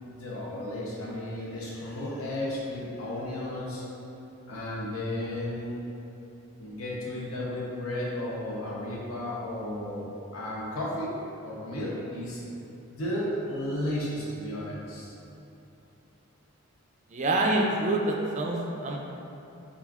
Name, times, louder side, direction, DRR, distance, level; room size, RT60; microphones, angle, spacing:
voice 1, 0.1-3.8 4.5-5.8 6.6-12.4 12.9-15.1, left 1 dB, 70° left, -6 dB, 0.8 m, -33 dB
voice 2, 17.1-19.0, right 2 dB, 35° right, 0 dB, 0.4 m, -26 dB
6.8 x 2.5 x 2.3 m, 2.9 s
head